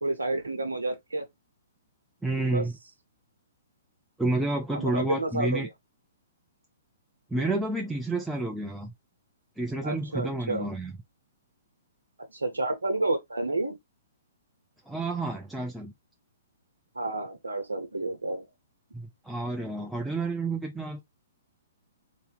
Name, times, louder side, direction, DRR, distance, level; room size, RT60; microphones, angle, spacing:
voice 1, 0.0-1.3 2.5-2.6 4.7-5.7 7.4-7.5 9.8-10.7 12.3-13.8 16.9-18.5, right 2 dB, 75° right, 0.9 m, -30 dB
voice 2, 2.2-2.7 4.2-5.7 7.3-8.9 9.6-10.9 14.9-15.9 18.9-21.0, right 2 dB, 5° right, 0.6 m, -30 dB
4.0 x 2.7 x 4.0 m
figure-of-eight pair, 120°, 0 cm